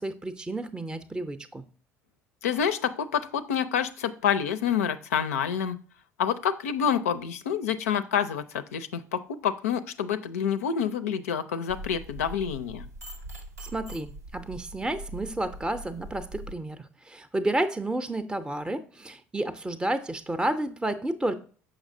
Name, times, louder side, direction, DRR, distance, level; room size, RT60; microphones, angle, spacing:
voice 1, 0.0-1.6 13.6-21.3, right 1 dB, 10° right, 0.5 m, -31 dB
voice 2, 2.4-5.8 6.2-12.9, left 8 dB, 75° left, 0.4 m, -28 dB
sound 1, 11.7-16.5, right 1 dB, 85° right, 0.8 m, -42 dB
6.3 x 5.9 x 2.6 m
figure-of-eight pair, 60°, 8 cm